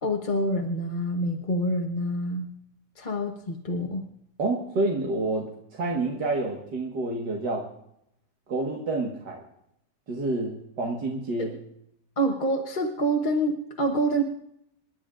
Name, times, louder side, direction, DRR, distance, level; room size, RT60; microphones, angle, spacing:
voice 1, 0.0-2.5 3.0-4.0 11.4-11.5 12.2-14.2, right 1 dB, 35° left, 2 dB, 1.0 m, -27 dB
voice 2, 4.4-7.7 8.5-9.4 10.1-11.6, right 2 dB, 80° right, 0 dB, 2.2 m, -28 dB
27.5 x 11.5 x 2.5 m, 0.78 s
omnidirectional pair, 1.8 m